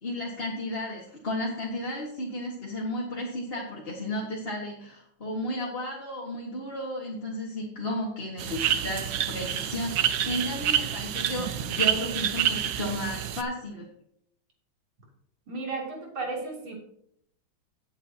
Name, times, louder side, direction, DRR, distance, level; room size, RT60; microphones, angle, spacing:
voice 1, 0.0-13.9, left 1 dB, 30° left, -4 dB, 1.8 m, -33 dB
sound 1, 8.4-13.4, right 10 dB, 65° right, 1.1 m, -28 dB
voice 2, 15.5-16.8, right 3 dB, 85° right, -2 dB, 3.6 m, -34 dB
17.0 x 7.9 x 2.9 m, 0.71 s
omnidirectional pair, 2.2 m